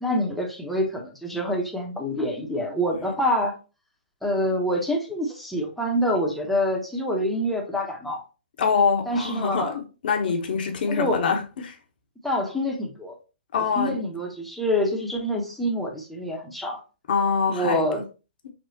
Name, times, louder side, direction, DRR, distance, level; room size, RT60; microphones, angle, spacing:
voice 1, 0.0-3.5 4.2-8.2 9.1-9.8 10.9-11.3 12.2-13.2 13.6-16.8 17.5-18.0, equal, ahead, 0.9 m, -26 dB
voice 2, 8.6-11.7 13.5-14.0 17.1-17.8, left 5 dB, 60° left, 1.1 m, -24 dB
6.1 x 2.4 x 2.8 m
figure-of-eight pair, 130°, 6 cm